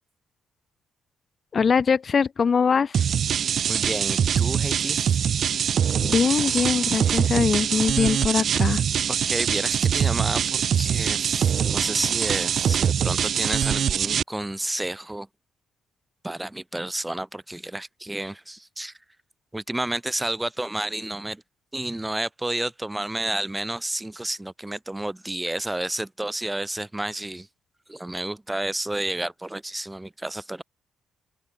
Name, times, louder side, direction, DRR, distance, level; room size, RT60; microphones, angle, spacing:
voice 1, 1.5-3.0 6.0-8.8, left 6 dB, 45° left, 0.4 m, -22 dB
sound 1, 2.9-14.2, right 8 dB, 60° right, 0.3 m, -23 dB
voice 2, 3.7-5.2 9.1-15.3 16.2-18.9 19.5-21.4 21.7-27.5 27.9-30.6, right 1 dB, 10° right, 0.6 m, -31 dB
open air
cardioid pair, 90°, 0 cm